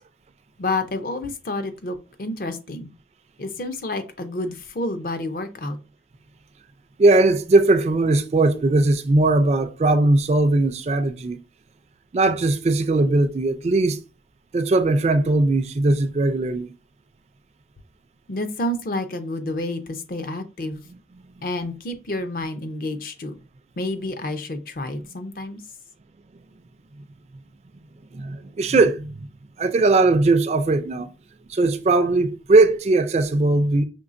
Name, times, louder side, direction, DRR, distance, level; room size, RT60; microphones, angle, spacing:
voice 1, 0.6-2.9 3.4-5.8 18.3-20.8 21.4-23.4 23.8-25.6, left 2 dB, 50° left, 0.5 m, -29 dB
voice 2, 7.0-11.4 12.1-14.0 14.5-16.7 20.9-21.0 28.1-29.3 29.6-31.1 31.5-33.8, right 2 dB, 35° right, 0.3 m, -19 dB
5.2 x 3.1 x 2.5 m
head